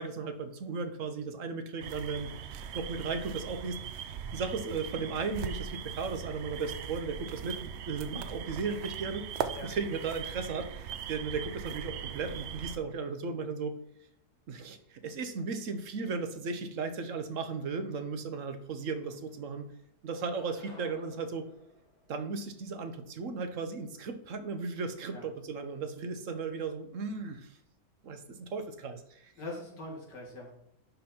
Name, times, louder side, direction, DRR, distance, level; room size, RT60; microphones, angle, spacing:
voice 1, 0.0-2.3 2.7-13.7 14.5-19.6 20.0-21.5 22.1-27.6 28.0-29.3, right 4 dB, 55° right, 9 dB, 1.1 m, -36 dB
sound 1, 1.8-12.8, right 8 dB, 85° right, 0.5 m, -40 dB
sound 2, 18.9-19.7 20.1-22.7, left 1 dB, 65° left, 2.7 m, -56 dB
voice 2, 29.4-30.5, left 2 dB, 85° left, -1 dB, 2.7 m, -42 dB
11.0 x 3.9 x 4.3 m, 0.73 s
omnidirectional pair, 1.8 m